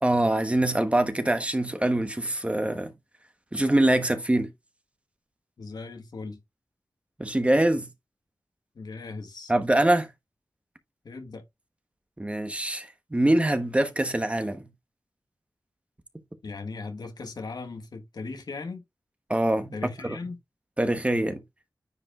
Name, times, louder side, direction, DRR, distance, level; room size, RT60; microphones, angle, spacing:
voice 1, 0.0-2.9 3.5-4.5 7.2-7.9 9.5-10.1 12.2-14.7 19.3-20.2 20.8-21.4, right 1 dB, 20° right, 1.1 m, -24 dB
voice 2, 5.6-6.4 8.7-9.5 11.0-11.4 16.4-18.8 19.7-20.4, left 3 dB, 90° left, 1.5 m, -38 dB
9.6 x 5.0 x 2.4 m
wide cardioid pair, 90°, 7 cm